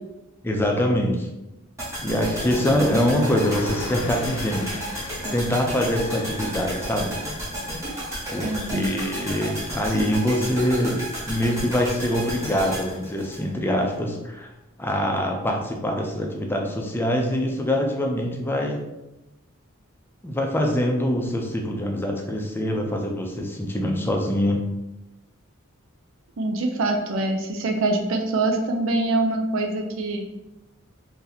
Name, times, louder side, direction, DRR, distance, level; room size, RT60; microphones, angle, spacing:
voice 1, 0.4-1.3 2.0-4.8 5.3-7.1 8.3-14.5 14.8-18.8 20.2-24.6, equal, 10° left, 1 dB, 0.4 m, -24 dB
sound 1, 1.8-14.0 14.2-14.3, right 1 dB, 15° right, 1.1 m, -32 dB
sound 2, 2.0-7.1, left 2 dB, 70° left, 0.4 m, -37 dB
voice 2, 8.4-8.9 26.4-30.3, right 2 dB, 65° right, 4 dB, 0.4 m, -24 dB
2.7 x 2.6 x 4.0 m, 0.99 s
head